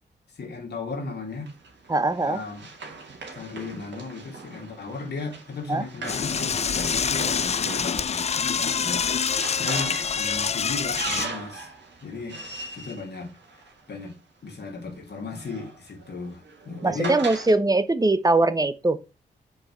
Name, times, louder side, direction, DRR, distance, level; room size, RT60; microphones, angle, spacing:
voice 1, 0.3-1.5 2.2-2.7 3.3-11.7 12.0-12.4 12.7-13.3 13.9-14.2 14.4-17.2, left 4 dB, 60° left, 2.0 m, -35 dB
Run, 1.5-14.1 15.1-17.6, right 3 dB, 70° right, 2.2 m, -39 dB
voice 2, 1.9-2.4 5.7-5.8 16.8-19.0, right 2 dB, 20° right, 0.8 m, -21 dB
Door / Toilet flush, 6.0-11.3, left 6 dB, 35° left, 0.4 m, -26 dB
5.7 x 4.8 x 4.3 m
cardioid pair, 55°, 19 cm